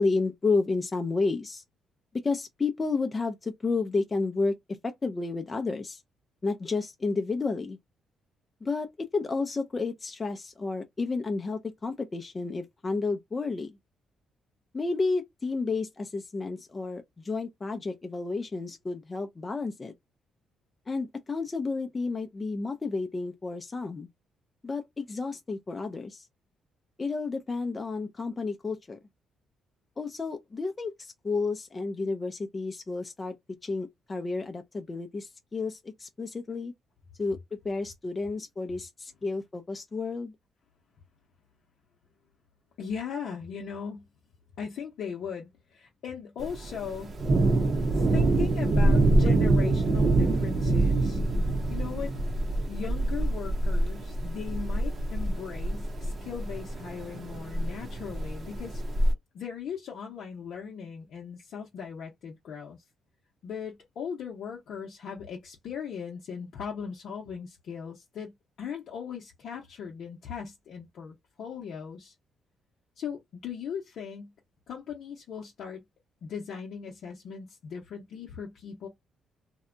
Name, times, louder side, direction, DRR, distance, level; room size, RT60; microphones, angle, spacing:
voice 1, 0.0-1.6 2.1-4.6 4.8-6.0 6.4-7.8 8.6-13.7 14.7-19.9 20.9-24.1 24.6-26.2 27.0-29.0 30.0-33.3 33.6-36.7 37.2-37.4 37.6-40.3, left 3 dB, 30° left, 0.4 m, -31 dB
voice 2, 42.8-44.0 44.6-47.2 47.9-51.2 51.7-52.1 52.7-58.8 59.3-62.8 63.4-68.3 68.6-72.1 73.0-74.3 74.7-75.8 76.2-78.9, left 7 dB, 70° left, 0.7 m, -38 dB
Thunder, 46.4-59.1, right 2 dB, 45° right, 0.7 m, -26 dB
2.7 x 2.1 x 2.5 m
cardioid pair, 90°, 0 cm